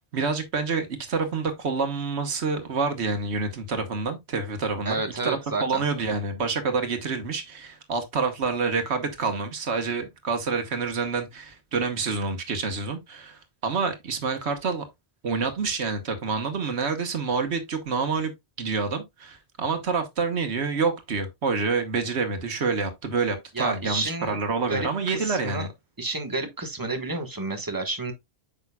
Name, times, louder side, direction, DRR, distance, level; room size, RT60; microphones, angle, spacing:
voice 1, 0.1-14.9 15.2-18.3 18.6-25.7, right 4 dB, 90° right, 1.5 m, -27 dB
voice 2, 4.8-5.8 23.5-24.4 24.7-25.7 26.0-28.1, right 3 dB, 20° right, 1.3 m, -30 dB
8.9 x 5.6 x 2.3 m
omnidirectional pair, 1.1 m